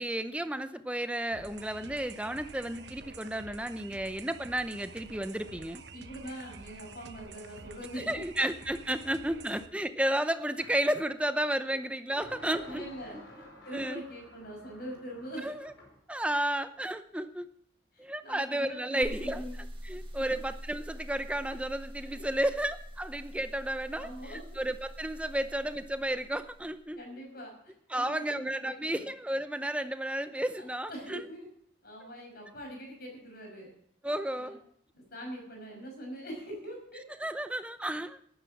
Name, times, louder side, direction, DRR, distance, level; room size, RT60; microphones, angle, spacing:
voice 1, 0.0-5.8 7.9-13.2 13.7-14.0 15.4-15.7 16.1-17.5 18.0-27.0 27.9-31.3 34.0-34.6 36.9-38.2, right 1 dB, 5° right, 10 dB, 0.7 m, -33 dB
sound 1, 1.3-9.7, right 4 dB, 55° right, 1.0 m, -49 dB
voice 2, 5.9-8.2 12.1-13.2 13.6-15.6 17.9-19.5 22.0-22.1 23.9-24.6 27.0-29.1 30.6-31.5 31.8-33.7 34.3-34.6 34.9-37.0, equal, 50° left, 2 dB, 5.8 m, -43 dB
sound 2, 10.6-10.8 12.2-16.0, left 1 dB, 65° left, 4.9 m, -50 dB
sound 3, 19.0-26.8, equal, 25° right, 1.5 m, -44 dB
12.0 x 10.5 x 7.2 m, 0.66 s
head